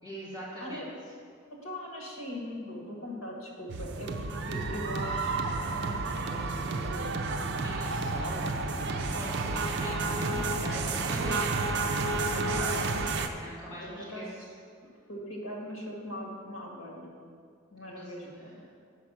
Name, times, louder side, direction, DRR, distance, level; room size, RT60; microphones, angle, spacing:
voice 1, 0.0-0.9 7.6-11.7 12.3-13.0 13.4-14.3 17.9-18.5, equal, 20° left, -10 dB, 2.5 m, -41 dB
voice 2, 1.5-6.5 6.8-7.3 10.3-10.5 13.6-14.3 14.8-17.2 17.7-18.7, left 1 dB, 65° left, -2 dB, 1.9 m, -41 dB
sound 1, 3.7-13.3, right 3 dB, 55° right, 0.5 m, -31 dB
8.3 x 5.7 x 6.2 m, 2.1 s
head